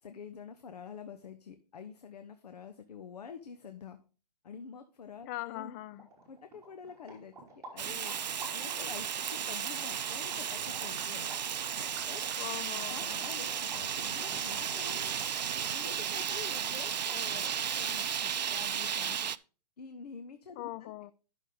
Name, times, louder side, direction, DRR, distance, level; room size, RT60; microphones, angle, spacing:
voice 1, 0.0-4.0 4.4-5.7 6.3-8.2 8.5-11.3 12.1-12.3 12.9-15.2 15.7-19.3 19.8-20.9, left 6 dB, 70° left, 1.0 m, -47 dB
voice 2, 5.3-6.1 12.4-13.3 20.6-21.1, left 16 dB, 25° left, 0.4 m, -41 dB
sound 1, 5.7-5.8 5.9-17.7, right 2 dB, 15° right, 3.3 m, -50 dB
Fire, 7.8-19.4, right 8 dB, 90° right, 0.5 m, -34 dB
11.0 x 6.3 x 3.8 m
hypercardioid pair, 135°, 21 cm